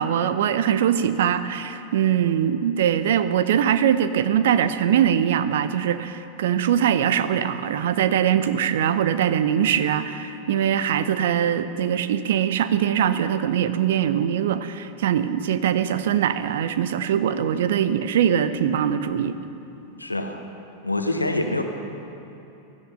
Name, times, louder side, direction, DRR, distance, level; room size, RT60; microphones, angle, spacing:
voice 1, 0.0-19.4, right 9 dB, 55° right, 12 dB, 0.7 m, -22 dB
voice 2, 20.0-20.4 20.8-21.6, left 2 dB, 85° left, 6 dB, 1.2 m, -25 dB
16.0 x 12.0 x 5.7 m, 2.9 s
figure-of-eight pair, 90°, 0 cm